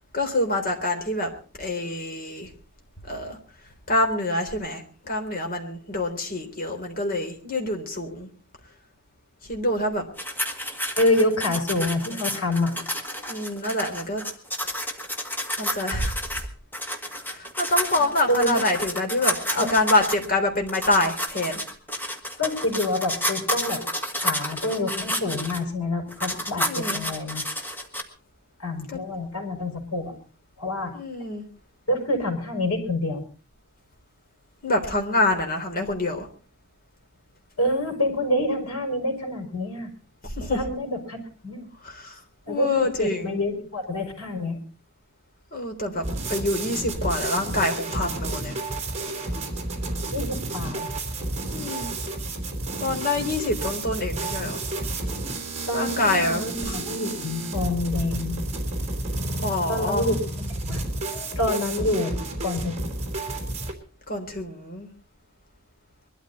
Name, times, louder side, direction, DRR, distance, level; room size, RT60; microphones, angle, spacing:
voice 1, 0.1-1.3 1.6-2.5 3.0-3.4 3.9-8.3 9.5-10.0 13.3-14.2 15.6-16.1 17.3-21.5 26.6-27.0 28.9-29.0 30.9-31.4 34.6-36.3 40.2-40.7 41.8-42.2 42.5-43.3 45.5-48.6 51.5-51.9 52.8-54.6 55.7-56.8 59.4-60.1 64.1-64.9, left 2 dB, 40° left, 4 dB, 3.7 m, -26 dB
sound 1, 10.2-16.5 16.7-20.3 20.7-25.6 26.1-28.0, equal, 10° left, 1.8 m, -30 dB
voice 2, 10.9-12.7 18.3-18.6 19.5-19.7 22.4-23.8 24.1-27.4 28.6-30.1 30.6-30.9 31.9-33.2 37.6-39.9 40.5-41.7 42.5-44.6 50.1-50.9 55.7-58.4 59.7-60.8 61.1-62.8, left 1 dB, 70° left, 3 dB, 5.7 m, -27 dB
sound 2, 46.0-63.7, right 2 dB, 30° right, 3.3 m, -31 dB
23.0 x 13.0 x 4.1 m, 0.38 s
head